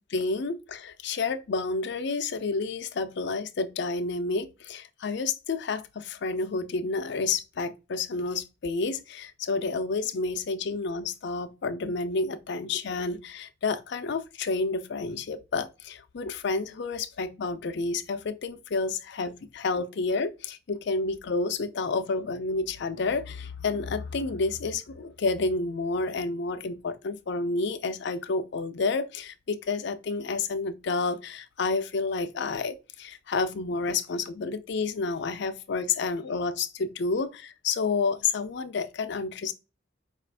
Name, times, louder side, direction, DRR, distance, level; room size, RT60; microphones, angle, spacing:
voice 1, 0.0-39.5, left 3 dB, 60° left, 0.5 m, -30 dB
4.9 x 2.5 x 3.4 m
head